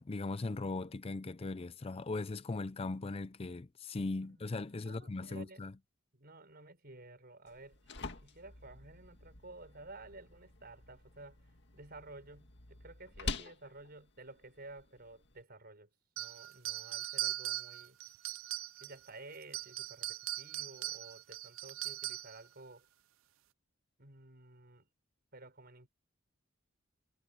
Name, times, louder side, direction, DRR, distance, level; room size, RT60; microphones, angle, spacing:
voice 1, 0.0-5.7, left 3 dB, 30° left, 0.5 m, -39 dB
voice 2, 4.2-5.6 6.1-11.4 11.7-15.9 16.2-18.0 18.8-22.9 24.0-24.9 25.3-25.9, right 2 dB, 50° right, 5.5 m, -53 dB
sound 1, 7.5-15.4, left 3 dB, 60° left, 2.0 m, -47 dB
sound 2, 16.2-19.1 19.4-22.4, right 14 dB, 80° right, 0.5 m, -40 dB
head